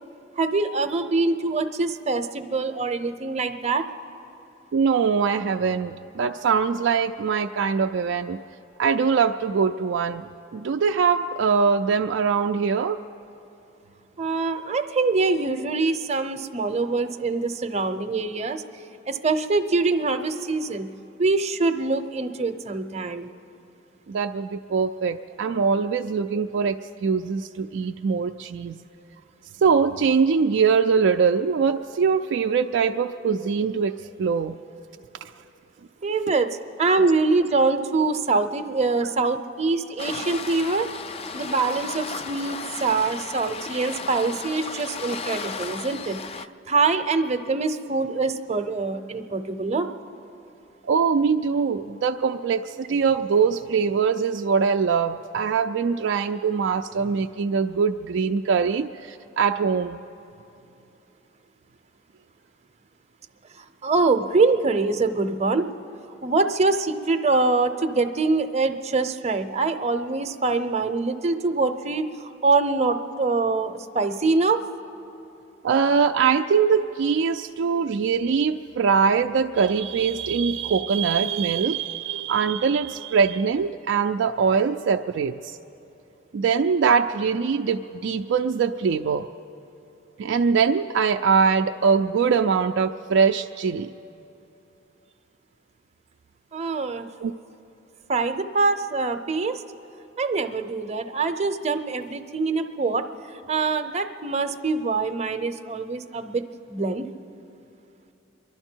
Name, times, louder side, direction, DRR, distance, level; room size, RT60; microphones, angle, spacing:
voice 1, 0.4-3.9 14.2-18.6 19.1-20.9 21.2-23.3 36.0-40.9 41.3-49.9 63.6-65.7 66.2-74.6 96.5-97.1 98.1-99.6 100.2-107.1, right 3 dB, 35° right, 8 dB, 0.7 m, -24 dB
voice 2, 4.7-8.4 8.8-10.2 10.5-13.0 24.1-28.8 29.6-34.6 50.9-60.0 75.6-85.6 86.3-89.3 90.2-93.9 97.2-97.3, right 6 dB, 65° right, 4 dB, 0.4 m, -22 dB
Waves surf, 40.0-46.5, left 5 dB, 30° left, 0.4 m, -34 dB
27.5 x 12.0 x 4.5 m, 2.8 s
head